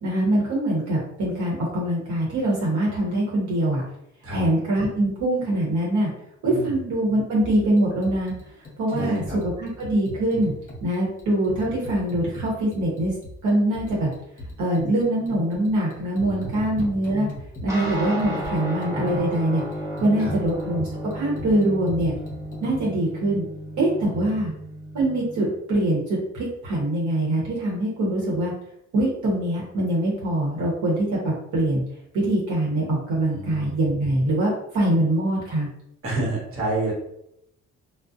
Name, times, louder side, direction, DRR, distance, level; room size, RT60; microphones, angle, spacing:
voice 1, 0.0-3.8 4.3-6.1 6.4-8.3 8.8-10.5 10.8-13.1 13.4-14.1 14.6-17.3 17.6-19.6 20.0-22.1 22.6-23.4 23.8-24.5 24.9-28.5 28.9-31.8 32.1-35.7, right 1 dB, 70° right, -5 dB, 0.9 m, -23 dB
sound 1, 7.4-22.8, left 2 dB, 30° left, 0.8 m, -38 dB
voice 2, 8.9-9.4 16.2-16.7 20.2-20.4 33.3-33.7 36.0-36.9, right 2 dB, 45° right, -3 dB, 1.1 m, -29 dB
sound 2, 17.7-25.5, equal, 10° right, 0.8 m, -33 dB
2.5 x 2.0 x 2.4 m, 0.76 s
cardioid pair, 90°, 30 cm